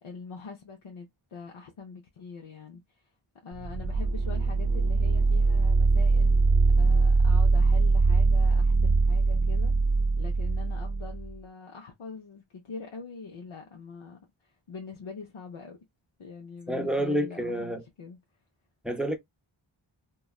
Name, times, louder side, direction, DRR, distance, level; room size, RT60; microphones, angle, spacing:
voice 1, 0.0-3.0 3.4-9.7 10.2-15.8 16.2-18.2, left 4 dB, 90° left, 0.7 m, -44 dB
sound 1, 3.5-11.3, right 3 dB, 45° right, 0.6 m, -22 dB
voice 2, 16.7-17.8 18.8-19.2, right 1 dB, ahead, 0.5 m, -28 dB
3.0 x 2.3 x 2.3 m
wide cardioid pair, 45°, 48 cm